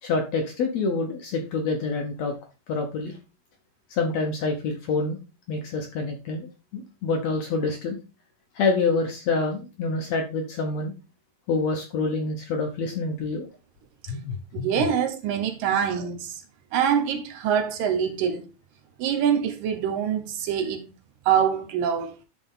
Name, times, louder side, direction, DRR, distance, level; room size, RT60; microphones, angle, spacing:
voice 1, 0.0-2.3 2.7-3.2 3.9-5.2 5.5-8.0 8.6-10.9 11.5-13.5 14.1-14.8, left 3 dB, 65° left, 1.8 m, -27 dB
voice 2, 14.5-16.4 16.7-18.4 19.0-20.9 21.3-22.1, right 8 dB, 75° right, 2.6 m, -24 dB
11.0 x 4.2 x 3.7 m
omnidirectional pair, 4.1 m